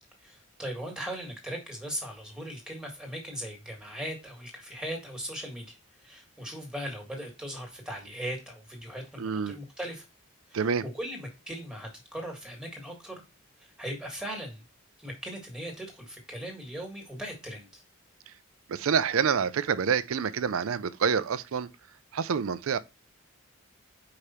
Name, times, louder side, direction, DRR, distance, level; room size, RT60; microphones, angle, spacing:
voice 1, 0.2-5.7 6.0-10.0 10.5-13.2 13.8-14.6 15.0-17.8, equal, 5° right, 1.6 m, -39 dB
voice 2, 9.2-9.6 10.5-10.8 18.3-18.4 18.7-21.7 22.1-22.8, right 6 dB, 75° right, 0.4 m, -27 dB
5.0 x 4.8 x 4.2 m
head